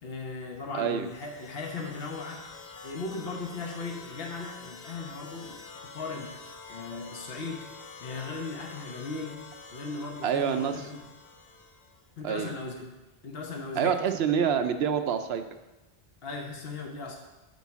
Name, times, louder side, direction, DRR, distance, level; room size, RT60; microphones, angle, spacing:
voice 1, 0.0-2.4 2.8-5.6 5.9-6.3 6.7-7.7 8.0-9.4 9.7-11.0 12.2-12.9 13.2-14.0 16.2-17.2, left 3 dB, 70° left, 1 dB, 1.3 m, -37 dB
voice 2, 0.7-1.1 10.2-10.8 12.2-12.5 13.8-15.4, right 7 dB, 80° right, 9 dB, 0.9 m, -27 dB
sound 1, 0.8-12.1, left 4 dB, 90° left, 1.1 m, -47 dB
8.0 x 4.7 x 7.2 m, 1.1 s
omnidirectional pair, 1.0 m